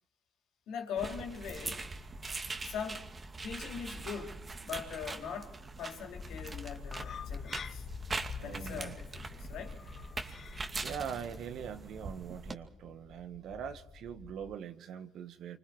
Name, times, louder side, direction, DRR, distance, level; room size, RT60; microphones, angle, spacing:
voice 1, 0.7-1.9 2.6-3.1 3.4-7.9 8.4-9.8, left 7 dB, 70° left, 3 dB, 4.5 m, -41 dB
sound 1, 1.0-12.5, right 3 dB, 30° right, 2.4 m, -42 dB
sound 2, 6.1-14.5, left 6 dB, 50° left, 1.5 m, -46 dB
voice 2, 8.3-9.0 10.8-15.6, right 8 dB, 65° right, 9 dB, 1.8 m, -42 dB
28.0 x 26.0 x 4.7 m, 0.82 s
supercardioid pair, 70°, 0 cm